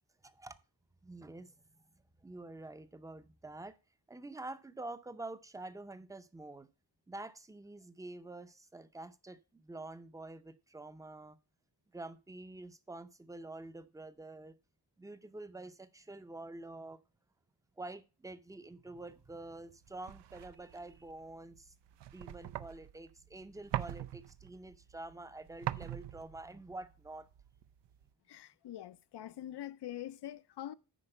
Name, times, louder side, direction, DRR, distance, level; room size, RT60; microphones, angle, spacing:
voice 1, 0.2-0.6 1.0-1.8 2.2-3.8 4.1-6.7 7.1-11.4 11.9-14.5 15.0-17.0 17.8-21.7 22.1-27.3, right 2 dB, 10° right, 0.5 m, -47 dB
sound 1, 19.2-28.1, right 13 dB, 85° right, 0.6 m, -44 dB
voice 2, 28.3-30.7, left 12 dB, 75° left, 0.6 m, -44 dB
10.0 x 4.2 x 6.5 m
wide cardioid pair, 135°, 41 cm